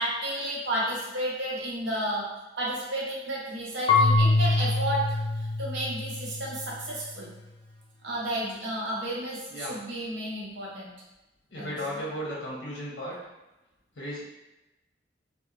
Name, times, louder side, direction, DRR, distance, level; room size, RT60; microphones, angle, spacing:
voice 1, 0.0-2.3 2.6-5.2 5.6-7.3 8.0-11.0 11.6-11.7, right 1 dB, 75° right, -5 dB, 0.7 m, -32 dB
Marimba xylophone / Wood, 3.9-6.7, left 3 dB, 30° left, 0.3 m, -24 dB
voice 2, 11.5-13.2 13.9-14.2, equal, 70° left, -4 dB, 0.7 m, -35 dB
2.9 x 2.0 x 2.3 m, 1.0 s
head